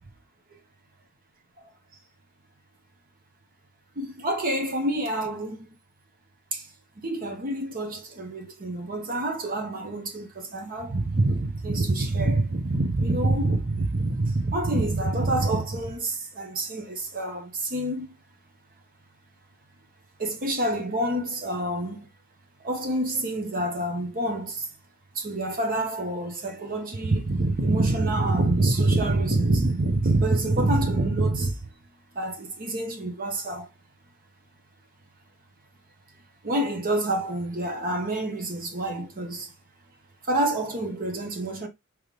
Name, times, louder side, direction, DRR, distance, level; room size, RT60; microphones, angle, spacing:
voice 1, 4.0-5.7 6.5-6.7 7.0-18.1 20.2-22.1 22.6-24.7 25.1-31.6 32.1-33.7 36.4-39.5 40.2-41.7, right 2 dB, 40° right, 1.0 m, -26 dB
5.2 x 3.2 x 3.2 m
head